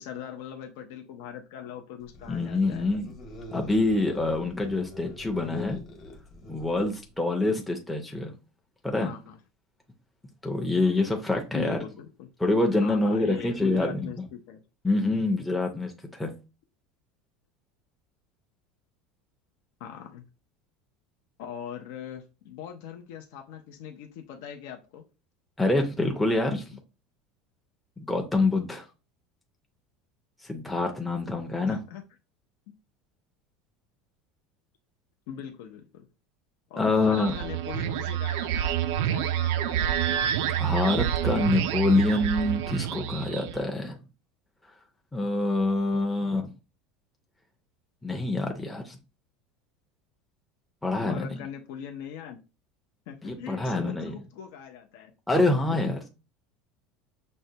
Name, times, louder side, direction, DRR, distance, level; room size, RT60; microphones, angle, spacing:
voice 1, 0.0-2.9 9.0-9.4 11.5-12.3 12.8-14.6 19.8-20.2 21.4-25.0 31.7-32.0 35.3-36.1 36.7-40.3 41.8-41.9 51.0-52.4 53.1-55.1, left 9 dB, 75° left, 0.5 m, -41 dB
sound 1, 2.1-7.2, left 2 dB, 35° left, 1.1 m, -43 dB
voice 2, 2.3-3.1 3.5-5.8 6.5-8.3 8.8-9.1 10.4-11.8 12.4-14.1 14.8-16.3 25.6-26.8 28.0-28.9 30.4-31.8 36.8-37.4 40.4-44.0 45.1-46.5 48.0-49.0 50.8-51.4 53.2-54.2 55.3-56.1, left 2 dB, 5° left, 0.5 m, -26 dB
sound 2, 37.0-43.6, right 10 dB, 80° right, 0.3 m, -28 dB
6.1 x 2.2 x 2.7 m
supercardioid pair, 145°, 0 cm